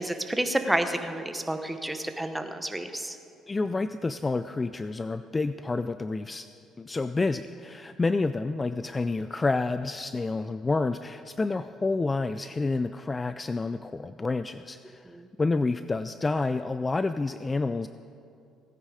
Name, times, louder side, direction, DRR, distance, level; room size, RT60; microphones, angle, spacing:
voice 1, 0.0-3.2 15.1-15.3, right 1 dB, 5° right, 7 dB, 1.0 m, -30 dB
voice 2, 3.5-6.5 6.8-15.1 15.4-17.9, left 3 dB, 20° left, 11 dB, 0.3 m, -29 dB
17.0 x 10.0 x 4.9 m, 2.6 s
cardioid pair, 105°, 0 cm